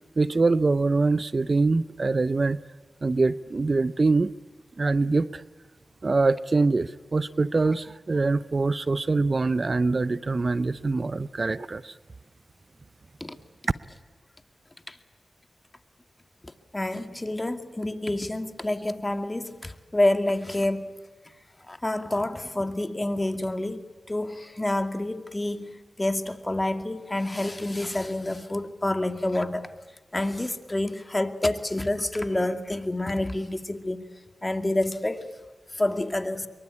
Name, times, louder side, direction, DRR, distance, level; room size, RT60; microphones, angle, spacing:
voice 1, 0.2-2.6 3.0-4.3 4.8-5.4 6.0-11.9, right 3 dB, 50° right, 0.7 m, -24 dB
voice 2, 16.7-21.0 21.7-29.7 30.1-34.0 34.4-35.3 35.7-36.5, left 1 dB, 25° left, 2.4 m, -28 dB
24.5 x 23.0 x 8.5 m
cardioid pair, 45°, 0 cm